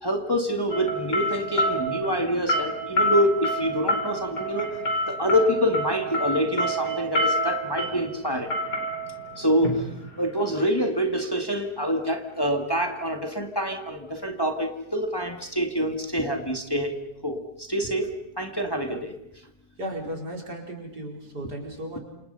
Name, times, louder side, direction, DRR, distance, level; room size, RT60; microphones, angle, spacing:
voice 1, 0.0-4.8 5.1-8.5 9.4-9.9 10.2-17.0 17.2-19.1, equal, 15° left, 4 dB, 2.0 m, -26 dB
sound 1, 0.7-10.6, equal, 70° left, 5.6 m, -28 dB
voice 2, 19.8-22.0, right 1 dB, 70° right, 0 dB, 5.2 m, -35 dB
28.5 x 28.0 x 5.6 m, 0.82 s
omnidirectional pair, 1.8 m